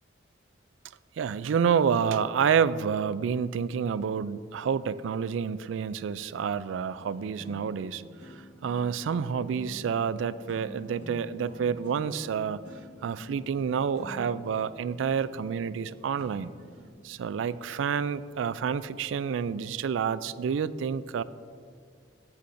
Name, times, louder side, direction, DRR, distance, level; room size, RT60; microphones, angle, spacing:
voice 1, 1.2-12.6 13.0-16.5 17.0-21.2, right 7 dB, 90° right, 16 dB, 0.3 m, -29 dB
sound 1, 6.9-16.9, left 1 dB, 60° left, 1.7 m, -48 dB
13.5 x 8.4 x 2.6 m, 2.2 s
head